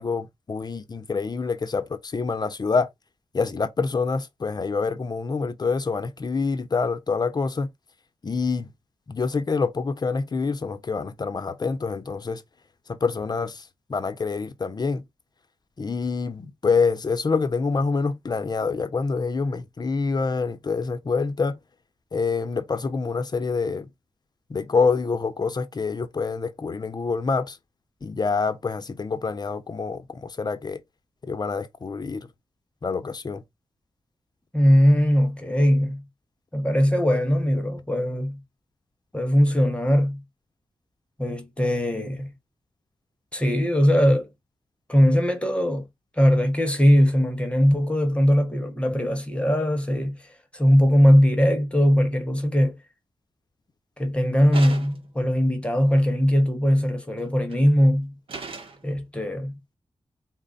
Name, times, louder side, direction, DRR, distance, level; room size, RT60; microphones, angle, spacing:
voice 1, 0.0-2.9 3.3-7.7 8.2-8.7 9.1-12.4 12.9-15.0 15.8-21.6 22.1-23.9 24.5-27.6 28.0-30.8 31.2-32.3 32.8-33.4, left 4 dB, 45° left, 0.6 m, -26 dB
voice 2, 34.5-36.0 36.5-38.4 39.1-40.2 41.2-42.3 43.3-44.3 44.9-45.9 46.2-50.2 50.5-52.8 54.0-58.1 58.8-59.6, equal, 10° left, 1.0 m, -20 dB
sound 1, 54.5-55.2 57.2-57.6 58.3-58.9, right 4 dB, 65° right, 0.8 m, -37 dB
4.1 x 2.1 x 3.8 m
wide cardioid pair, 95°, 10 cm